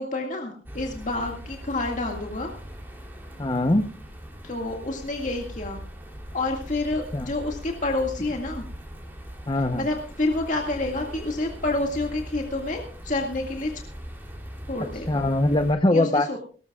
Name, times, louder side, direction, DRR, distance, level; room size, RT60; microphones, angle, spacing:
voice 1, 0.0-2.5 4.4-5.8 6.3-8.6 9.8-13.9 14.7-15.3 15.9-16.4, left 2 dB, 45° left, 1 dB, 2.1 m, -28 dB
sound 1, 0.6-15.7, equal, 10° right, 3.2 m, -40 dB
voice 2, 3.4-3.8 7.1-7.3 9.5-9.9 15.1-16.4, left 1 dB, 25° left, 6 dB, 0.9 m, -22 dB
19.5 x 19.0 x 2.4 m, 0.39 s
head